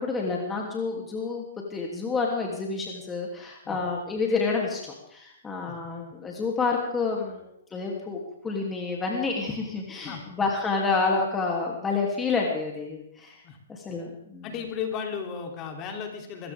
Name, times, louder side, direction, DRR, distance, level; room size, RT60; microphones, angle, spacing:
voice 1, 0.0-13.4 13.7-14.5, left 4 dB, 15° left, -1 dB, 2.9 m, -29 dB
voice 2, 14.4-16.5, left 7 dB, 30° left, 3 dB, 3.2 m, -34 dB
22.5 x 16.5 x 3.6 m, 0.77 s
hypercardioid pair, 135°, 0 cm